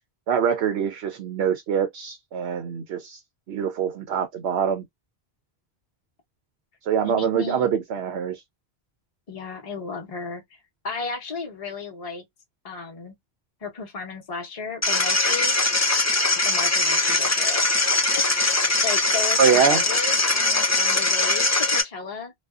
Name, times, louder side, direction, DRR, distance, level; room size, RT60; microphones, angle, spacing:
voice 1, 0.3-3.2 3.5-4.8 6.9-8.4 19.4-19.8, right 7 dB, 85° right, 0.8 m, -24 dB
voice 2, 7.0-7.7 9.3-10.4 10.8-12.2 12.6-13.1 13.6-15.6 16.4-17.6 18.2-18.5 18.8-22.3, left 4 dB, 40° left, 0.9 m, -34 dB
sound 1, 14.8-21.8, left 2 dB, 20° left, 0.5 m, -21 dB
2.5 x 2.3 x 2.3 m
omnidirectional pair, 1.1 m